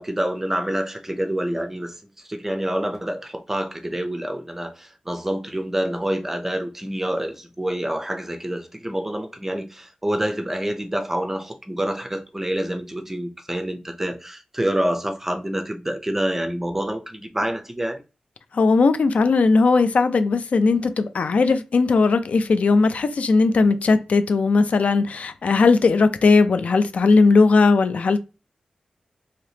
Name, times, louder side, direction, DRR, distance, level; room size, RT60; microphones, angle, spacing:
voice 1, 0.0-18.0, right 1 dB, 15° right, 0.5 m, -27 dB
voice 2, 18.5-28.2, left 4 dB, 70° left, 0.3 m, -18 dB
3.3 x 2.8 x 2.7 m
wide cardioid pair, 120°, 2 cm